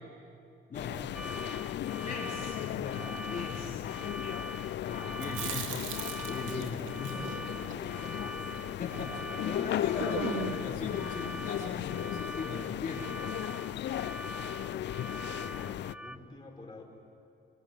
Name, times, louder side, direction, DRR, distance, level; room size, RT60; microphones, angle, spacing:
sound 1, 0.7-15.9, left 12 dB, 65° left, 0.5 m, -36 dB
sound 2, 1.1-16.2, equal, 5° right, 0.9 m, -44 dB
voice 1, 2.0-4.2 4.8-5.7 6.2-7.3 8.8-13.1, left 4 dB, 40° left, -4 dB, 3.8 m, -39 dB
Chewing mastication, 5.1-9.3 9.6-9.7 10.0-10.7, right 6 dB, 85° right, 2.6 m, -39 dB
voice 2, 7.0-8.7 14.5-16.8, left 2 dB, 20° left, -1 dB, 5.6 m, -51 dB
26.5 x 22.5 x 9.1 m, 2.6 s
cardioid pair, 90°, 20 cm